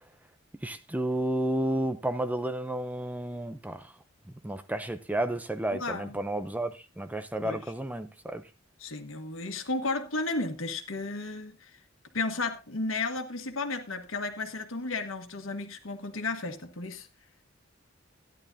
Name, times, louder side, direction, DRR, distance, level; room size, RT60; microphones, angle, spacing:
voice 1, 0.6-3.9 4.4-8.5, right 1 dB, 10° right, 0.6 m, -31 dB
voice 2, 5.8-6.2 7.4-7.6 8.8-11.7 12.1-17.1, left 3 dB, 85° left, 1.5 m, -33 dB
13.5 x 10.5 x 2.7 m
head